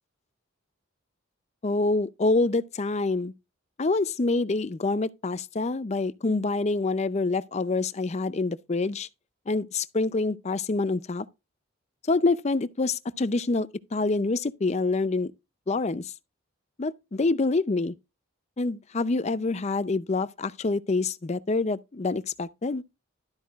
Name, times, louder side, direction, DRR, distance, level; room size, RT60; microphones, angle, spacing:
voice 1, 1.6-3.3 3.8-9.1 9.5-11.3 12.1-15.3 15.7-16.1 16.8-17.9 18.6-22.8, left 3 dB, 30° left, 0.5 m, -26 dB
12.0 x 8.4 x 2.4 m
head